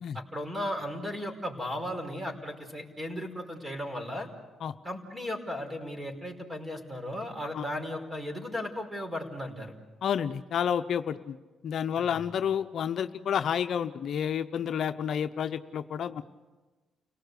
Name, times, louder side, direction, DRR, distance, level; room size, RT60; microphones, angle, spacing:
voice 1, 0.1-4.3 4.8-9.7 12.0-12.2, left 1 dB, 15° right, 4 dB, 5.1 m, -36 dB
voice 2, 10.0-11.4 11.6-16.2, left 8 dB, 65° left, 9 dB, 0.8 m, -30 dB
30.0 x 18.0 x 8.2 m, 1.2 s
cardioid pair, 90°, 0 cm